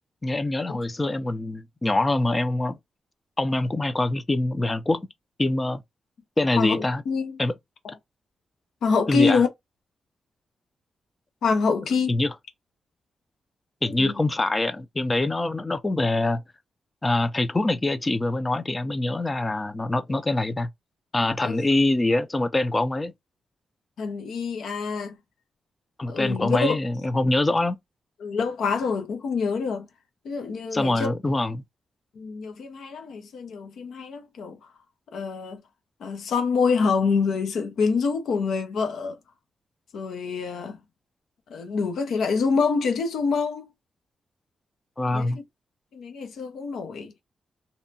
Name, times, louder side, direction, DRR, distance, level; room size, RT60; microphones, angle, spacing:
voice 1, 0.2-2.8 3.4-5.1 5.4-5.8 6.4-7.0 7.4-7.5 9.1-9.4 12.1-12.3 13.8-16.4 17.0-20.7 21.1-23.1 26.0-27.8 30.7-31.6 45.0-45.4, left 2 dB, 20° left, 0.4 m, -24 dB
voice 2, 6.6-7.4 7.8-8.0 8.8-9.5 11.4-12.2 13.8-14.1 21.4-21.6 24.0-25.2 26.1-26.8 28.2-29.9 30.2-31.1 32.1-34.7 35.1-35.6 36.0-39.2 39.9-40.8 41.5-43.7 45.1-45.4 45.9-47.1, left 5 dB, 85° left, 0.6 m, -26 dB
2.7 x 2.2 x 2.6 m
wide cardioid pair, 120°, 0 cm